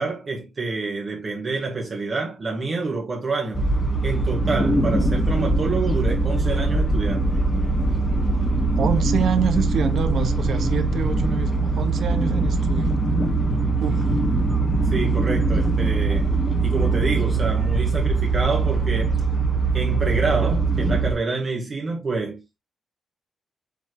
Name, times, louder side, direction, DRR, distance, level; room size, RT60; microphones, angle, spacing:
voice 1, 0.0-3.6 4.0-7.3 14.8-16.3 16.6-19.2 19.7-22.4, right 3 dB, 30° right, 1.7 m, -27 dB
sound 1, 3.5-21.1, right 3 dB, 15° left, 1.4 m, -22 dB
voice 2, 8.8-13.0 13.8-14.1, right 6 dB, 60° right, 1.5 m, -26 dB
7.5 x 5.7 x 3.1 m
wide cardioid pair, 170°, 0 cm